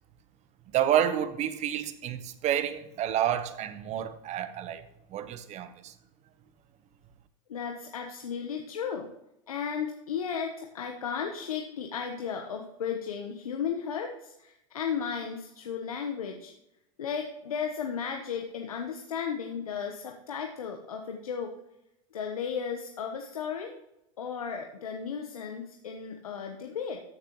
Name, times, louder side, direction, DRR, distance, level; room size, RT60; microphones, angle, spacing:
voice 1, 0.7-4.8 5.1-5.9, right 10 dB, 40° right, 1.0 m, -29 dB
voice 2, 7.5-9.1 9.5-16.5 17.0-21.5 22.1-23.7 24.2-27.0, left 7 dB, 90° left, 1.1 m, -34 dB
14.0 x 6.8 x 3.1 m
hypercardioid pair, 100°, 18 cm